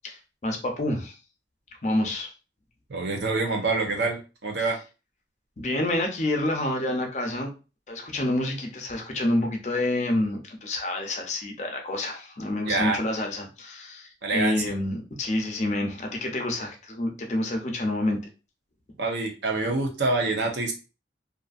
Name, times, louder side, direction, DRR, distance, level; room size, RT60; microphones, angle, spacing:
voice 1, 0.0-1.2 1.8-2.3 5.6-7.5 7.9-18.2, left 1 dB, 40° left, 3 dB, 0.6 m, -28 dB
voice 2, 2.9-4.8 12.6-13.0 14.2-14.7 19.0-20.7, right 3 dB, 75° right, 2 dB, 0.7 m, -26 dB
2.6 x 2.4 x 2.4 m, 0.31 s
head